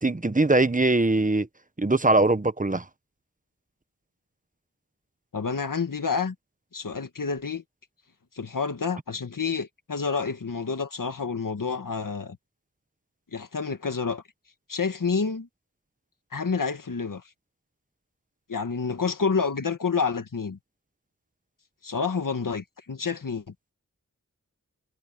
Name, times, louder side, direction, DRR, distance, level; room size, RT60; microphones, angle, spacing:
voice 1, 0.0-1.5 1.8-2.8, right 2 dB, 25° right, 1.0 m, -21 dB
voice 2, 5.3-6.4 6.7-7.6 8.3-12.4 13.3-14.2 14.7-15.5 16.3-17.2 18.5-20.6 21.8-23.4, left 5 dB, 85° left, 1.8 m, -28 dB
wide cardioid pair, 45°, 32 cm